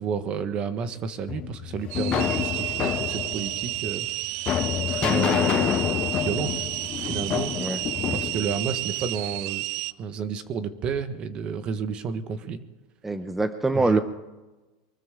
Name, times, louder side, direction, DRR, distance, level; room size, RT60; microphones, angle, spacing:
voice 1, 0.0-4.1 4.9-6.7 7.0-7.5 8.1-9.6 10.0-12.6 13.7-14.0, right 6 dB, 40° right, 10 dB, 1.4 m, -31 dB
sound 1, 1.3-9.4, left 11 dB, 35° left, 0.4 m, -28 dB
sound 2, 1.9-9.9, right 20 dB, 60° right, 0.4 m, -31 dB
voice 2, 13.0-14.0, right 2 dB, 5° right, 10 dB, 0.7 m, -24 dB
23.5 x 13.5 x 3.8 m, 1.1 s
supercardioid pair, 130°, 3 cm